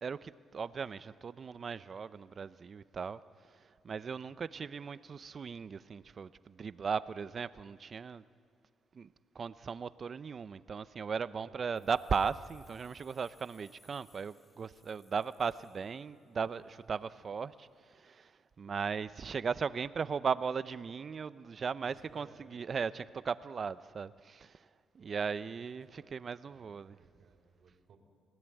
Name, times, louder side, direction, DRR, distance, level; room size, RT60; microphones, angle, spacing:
voice 1, 0.0-3.2 3.5-8.2 8.9-24.7 24.9-26.9, right 6 dB, 45° right, 0.7 m, -37 dB
voice 2, 11.4-12.0 16.7-17.2 21.8-22.7 25.0-28.0, right 4 dB, 60° right, 3.6 m, -61 dB
sound 1, 11.7-16.5, left 2 dB, 15° left, 3.1 m, -67 dB
30.0 x 17.5 x 9.2 m
cardioid pair, 90°, 0 cm